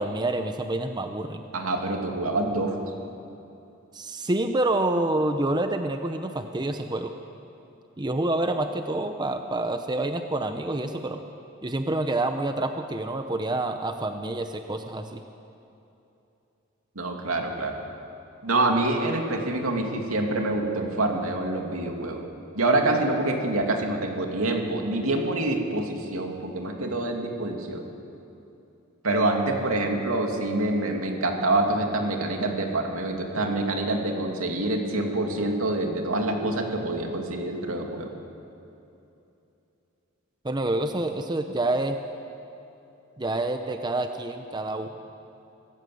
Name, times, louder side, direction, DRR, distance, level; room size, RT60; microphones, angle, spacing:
voice 1, 0.0-1.4 3.9-7.1 8.0-11.2 11.6-15.2 40.4-42.0 43.2-44.9, right 2 dB, 20° right, 6 dB, 0.7 m, -27 dB
voice 2, 1.5-2.8 17.0-17.8 18.4-22.2 22.5-27.8 29.0-38.1, right 2 dB, 80° right, 2 dB, 2.7 m, -26 dB
25.0 x 15.0 x 7.9 m, 2.8 s
head